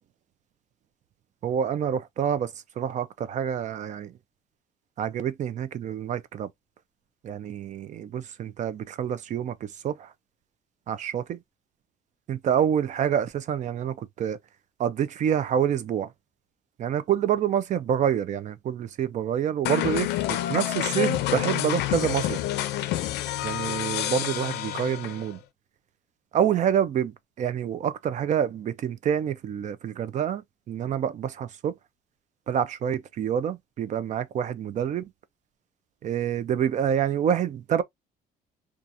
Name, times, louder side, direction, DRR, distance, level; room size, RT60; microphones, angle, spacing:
voice 1, 1.4-4.1 5.0-6.5 7.2-10.1 10.9-11.4 12.3-14.4 14.8-16.1 16.8-22.4 23.4-25.4 26.3-30.4 30.7-31.7 32.5-35.1 36.0-37.8, right 9 dB, 45° right, 0.4 m, -27 dB
sound 1, 19.6-25.3, left 13 dB, 80° left, 0.4 m, -28 dB
2.7 x 2.4 x 2.5 m
cardioid pair, 110°, 17 cm